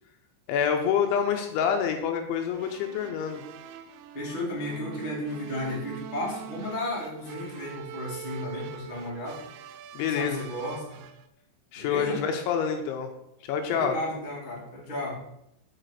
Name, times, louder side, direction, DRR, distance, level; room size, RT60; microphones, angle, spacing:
voice 1, 0.5-3.4 9.9-10.4 11.7-13.1 13.5-13.9, left 7 dB, 80° left, 5 dB, 2.9 m, -27 dB
sound 1, 2.5-11.3, right 10 dB, 90° right, 2.5 m, -43 dB
voice 2, 4.1-9.4 10.0-11.0 11.7-12.2 13.6-15.1, left 1 dB, 35° left, -4 dB, 0.7 m, -34 dB
7.2 x 6.0 x 6.6 m, 0.80 s
omnidirectional pair, 5.9 m